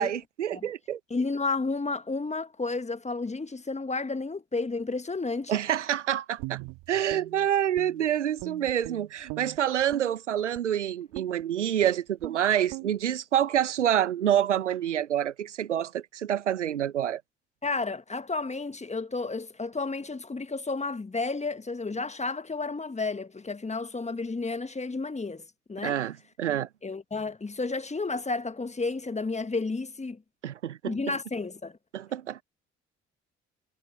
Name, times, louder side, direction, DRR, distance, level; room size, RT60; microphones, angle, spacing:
voice 1, 0.0-1.0 5.5-6.6 6.9-17.2 25.8-26.7 30.4-31.0 31.9-32.4, right 10 dB, 85° right, 0.9 m, -27 dB
voice 2, 1.1-5.6 17.6-26.0 26.8-30.2 30.8-31.8, left 3 dB, 20° left, 1.7 m, -32 dB
Guitar, 6.4-8.1 8.4-10.1 10.5-10.7 11.1-11.4 11.8-11.9 12.2-12.4 12.7-12.9, right 23 dB, 65° right, 2.7 m, -41 dB
figure-of-eight pair, 45°, 35 cm